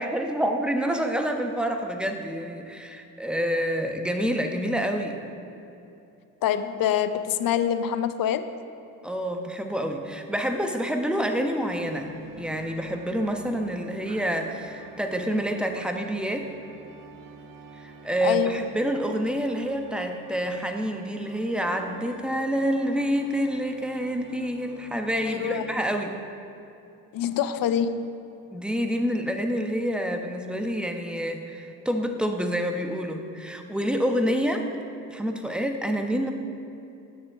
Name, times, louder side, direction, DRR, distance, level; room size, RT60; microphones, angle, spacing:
voice 1, 0.0-5.2 9.0-12.1 12.4-16.5 17.8-26.2 28.5-34.6 35.1-36.3, equal, ahead, 4 dB, 1.2 m, -27 dB
voice 2, 6.4-8.5 18.2-18.5 25.3-25.6 27.1-28.2, left 9 dB, 50° left, 11 dB, 0.7 m, -25 dB
sound 1, 11.5-25.8, right 4 dB, 45° right, 1.1 m, -48 dB
18.0 x 6.5 x 3.7 m, 2.8 s
hypercardioid pair, 45°, 46 cm